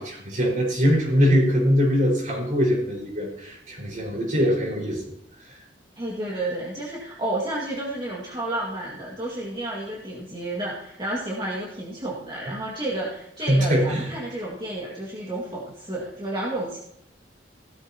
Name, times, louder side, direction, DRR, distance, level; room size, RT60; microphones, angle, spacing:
voice 1, 0.0-5.0 13.5-14.1, equal, 45° right, -3 dB, 5.1 m, -22 dB
voice 2, 6.0-16.8, right 1 dB, 25° right, -5 dB, 2.1 m, -31 dB
16.5 x 13.5 x 3.0 m, 0.75 s
head